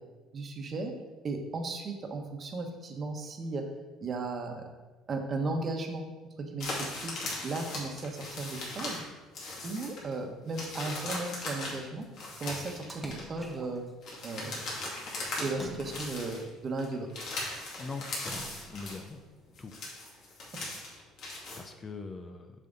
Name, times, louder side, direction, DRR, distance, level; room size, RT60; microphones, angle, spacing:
voice 1, 0.3-0.9 1.2-3.6 4.0-4.6 5.1-6.0 6.4-6.7 7.0-7.1 7.4-9.0 9.6-12.0 12.4-13.8 14.2-14.6 15.4-17.1, right 3 dB, 35° right, 3 dB, 1.1 m, -35 dB
sound 1, 6.6-9.1 9.3-10.1 10.5-13.2 14.0-15.5 15.8-16.4 16.8-19.1 19.5-21.6, left 2 dB, 60° left, 2.5 m, -38 dB
Splash splatter, 12.9-13.9 15.5-16.5 18.1-19.0, right 1 dB, 5° left, 0.9 m, -45 dB
voice 2, 17.8-19.2 19.6-19.8 21.6-22.5, left 4 dB, 25° left, 7 dB, 0.5 m, -42 dB
7.2 x 5.6 x 4.0 m, 1.2 s
cardioid pair, 120°, 0 cm